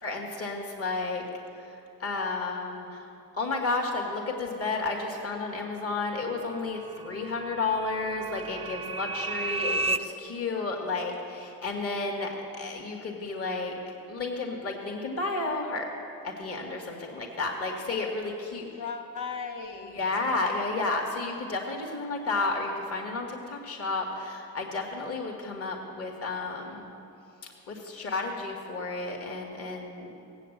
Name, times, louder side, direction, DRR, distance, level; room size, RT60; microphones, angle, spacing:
voice 1, 0.0-1.2 1.5-3.1 3.3-13.8 14.1-15.9 16.2-18.6 19.9-26.9 27.4-30.1, left 3 dB, 50° left, 0 dB, 2.2 m, -32 dB
sound 1, 5.7-10.0, right 3 dB, 20° right, 0.4 m, -34 dB
voice 2, 18.7-20.7, left 5 dB, 80° left, 4 dB, 1.5 m, -38 dB
17.0 x 8.4 x 8.0 m, 2.7 s
cardioid pair, 90°, 30 cm